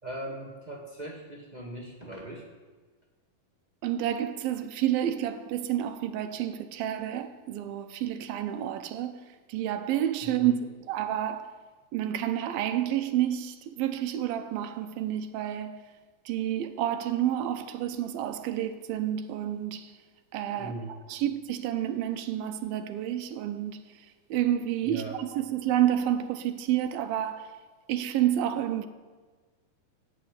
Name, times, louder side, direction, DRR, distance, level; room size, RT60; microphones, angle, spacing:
voice 1, 0.0-2.5 10.4-10.5 20.6-20.9 24.8-25.2, right 1 dB, 55° right, 0.4 m, -39 dB
voice 2, 3.8-10.5 10.8-11.6 11.9-15.8 16.3-20.0 20.3-27.6 27.9-28.9, right 11 dB, 85° right, 2.7 m, -29 dB
14.5 x 8.8 x 9.6 m
omnidirectional pair, 4.2 m